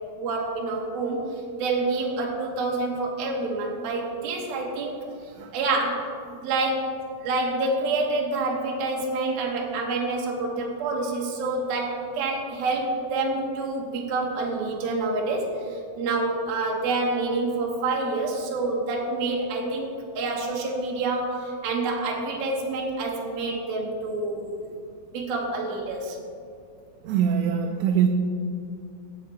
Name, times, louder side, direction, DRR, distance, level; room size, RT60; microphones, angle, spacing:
voice 1, 0.1-1.2 1.6-5.1 5.5-6.1 6.4-6.9 7.2-24.7 25.1-26.2, right 3 dB, 70° right, -1 dB, 2.7 m, -27 dB
voice 2, 27.0-28.1, right 8 dB, 90° right, 3 dB, 2.8 m, -22 dB
17.0 x 7.2 x 3.1 m, 2.4 s
omnidirectional pair, 4.9 m